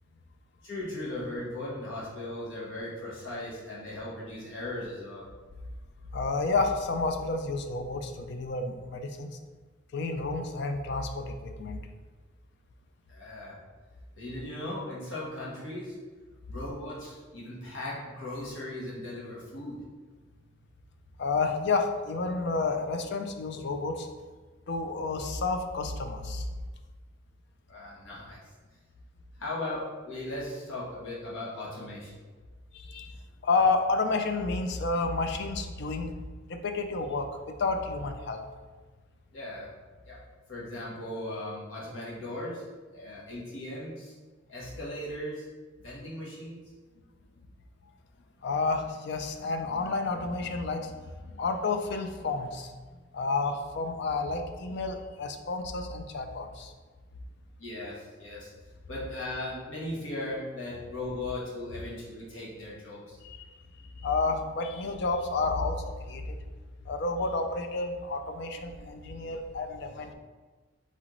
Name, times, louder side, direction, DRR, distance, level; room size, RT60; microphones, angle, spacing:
voice 1, 0.6-5.2 13.1-13.6 14.2-15.9 16.5-19.8 27.7-28.4 29.4-32.1 39.3-39.7 40.1-40.2 40.5-42.6 42.9-44.1 44.5-45.4 45.8-46.6 57.6-58.5 58.9-63.2, left 1 dB, 75° left, -6 dB, 1.3 m, -38 dB
voice 2, 6.1-9.3 9.9-11.8 21.2-24.1 24.7-26.5 32.7-33.2 33.4-36.1 36.5-38.4 48.4-51.0 51.3-52.7 53.1-56.7 63.2-63.5 64.0-66.4 66.9-70.1, left 3 dB, 55° left, 6 dB, 0.4 m, -30 dB
4.2 x 3.8 x 3.1 m, 1.4 s
head